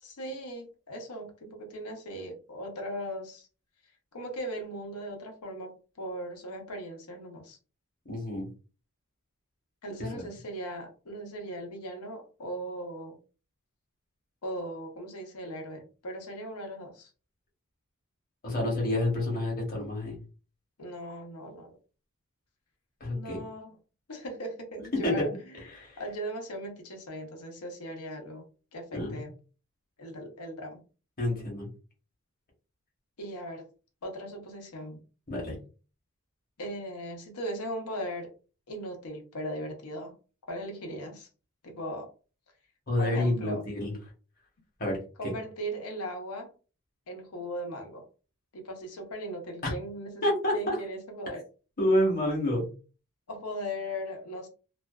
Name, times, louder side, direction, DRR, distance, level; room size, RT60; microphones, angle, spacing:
voice 1, 0.0-3.5 4.1-7.6 9.8-13.2 14.4-17.1 20.8-21.7 23.1-23.7 24.1-25.6 26.0-28.4 28.7-29.3 30.0-30.8 33.2-33.7 34.0-35.0 36.6-38.3 38.7-40.1 40.5-41.3 41.6-42.1 43.0-43.6 45.2-46.5 47.1-48.0 48.5-51.4 53.3-54.5, equal, 85° left, 3 dB, 0.8 m, -38 dB
voice 2, 8.0-8.5 10.1-10.2 18.4-20.2 23.0-23.4 25.0-25.1 25.7-26.0 28.9-29.2 31.2-31.7 35.3-35.6 42.9-43.9 44.8-45.3 49.6-49.7 50.2-50.8 51.8-52.6, left 1 dB, 40° left, -1 dB, 1.0 m, -28 dB
2.5 x 2.3 x 2.3 m, 0.35 s
head